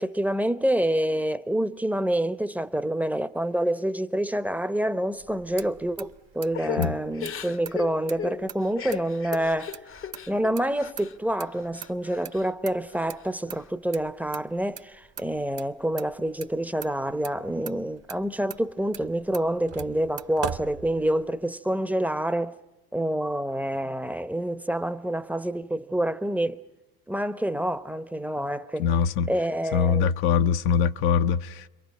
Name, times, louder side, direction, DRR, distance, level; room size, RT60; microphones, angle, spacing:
voice 1, 0.0-9.8 10.3-22.6 22.9-26.6 27.1-28.9 29.3-30.1, right 1 dB, 5° right, 0.8 m, -27 dB
Motor vehicle (road), 5.2-21.4, right 8 dB, 35° right, 1.0 m, -43 dB
Crying sobbing / Breathing, 6.5-11.2 11.5-12.5 12.9-13.7, left 8 dB, 30° left, 0.8 m, -37 dB
voice 2, 28.8-29.3 29.7-31.7, left 7 dB, 65° left, 0.8 m, -23 dB
28.5 x 23.0 x 5.4 m
hypercardioid pair, 80°, 43 cm